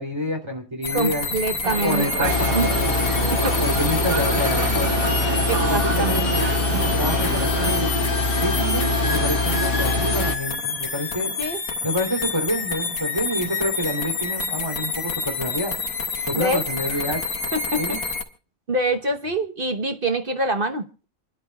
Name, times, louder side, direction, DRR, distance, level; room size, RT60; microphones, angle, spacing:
voice 1, 0.0-1.3 1.8-3.0 3.6-5.0 5.6-6.6 6.9-7.9 8.4-11.3 11.8-15.7 16.3-17.2 17.8-18.0, equal, 20° right, 2 dB, 3.1 m, -28 dB
sound 1, 0.8-18.2, left 4 dB, 70° left, 2.1 m, -28 dB
voice 2, 0.9-2.1 2.5-2.7 3.3-3.7 5.5-6.3 11.4-11.6 16.3-16.6 16.9-17.1 17.5-17.8 18.7-20.9, right 2 dB, 40° right, 7 dB, 1.1 m, -25 dB
sound 2, 1.6-7.8, right 6 dB, 80° right, 1.4 m, -30 dB
sound 3, 2.2-10.3, left 2 dB, 40° left, 1.8 m, -23 dB
28.0 x 11.0 x 2.3 m, 0.37 s
omnidirectional pair, 1.5 m